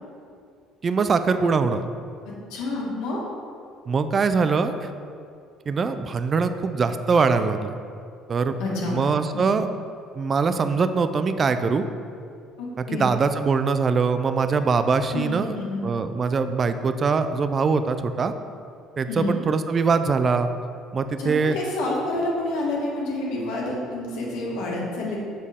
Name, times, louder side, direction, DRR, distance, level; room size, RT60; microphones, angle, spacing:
voice 1, 0.8-1.8 3.9-4.9 5.7-7.8 8.3-8.6 8.9-9.7 10.1-11.8 12.8-15.5 15.8-18.3 19.0-20.5 20.9-21.6, right 4 dB, 25° right, 10 dB, 0.3 m, -22 dB
voice 2, 2.5-3.2 8.6-9.0 9.3-9.5 12.6-13.1 15.1-15.8 19.1-19.4 21.2-25.2, left 2 dB, 85° left, -3 dB, 1.8 m, -28 dB
7.3 x 6.4 x 3.6 m, 2.4 s
cardioid pair, 165°, 0 cm